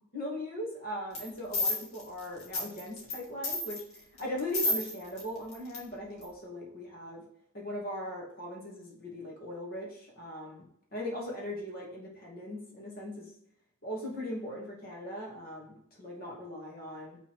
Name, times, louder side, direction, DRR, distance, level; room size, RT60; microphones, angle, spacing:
voice 1, 0.1-3.8 4.2-7.2 7.5-10.6 10.9-13.3 13.8-17.2, left 1 dB, 40° left, -3 dB, 2.4 m, -39 dB
sound 1, 1.1-1.3 1.5-3.2 3.4-5.2 5.5-5.8 6.2-6.3, left 2 dB, 70° left, 2.3 m, -31 dB
5.9 x 4.1 x 6.3 m, 0.71 s
head